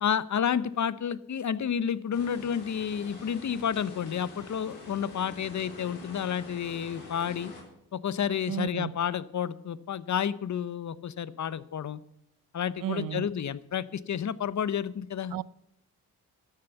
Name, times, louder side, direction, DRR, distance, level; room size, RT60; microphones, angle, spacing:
voice 1, 0.0-7.5 7.9-12.0 12.5-15.3, left 8 dB, 50° left, 0.7 m, -30 dB
sound 1, 2.1-7.6, left 2 dB, 90° left, 3.7 m, -46 dB
voice 2, 8.5-9.0 12.8-13.3 15.3-15.4, right 11 dB, 60° right, 0.6 m, -33 dB
12.5 x 7.0 x 8.1 m
supercardioid pair, 55°, 38 cm